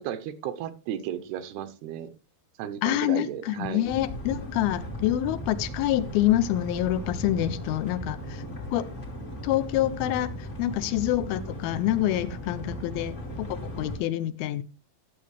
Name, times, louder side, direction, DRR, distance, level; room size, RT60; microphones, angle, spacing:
voice 1, 0.0-2.1 2.6-3.9, right 10 dB, 85° right, 11 dB, 2.8 m, -34 dB
voice 2, 2.8-8.4 8.7-8.9 9.4-10.3 10.6-14.6, left 13 dB, 80° left, 12 dB, 2.5 m, -26 dB
sound 1, 3.8-14.0, equal, 30° left, 1.3 m, -37 dB
12.0 x 7.6 x 3.2 m, 0.34 s
omnidirectional pair, 4.5 m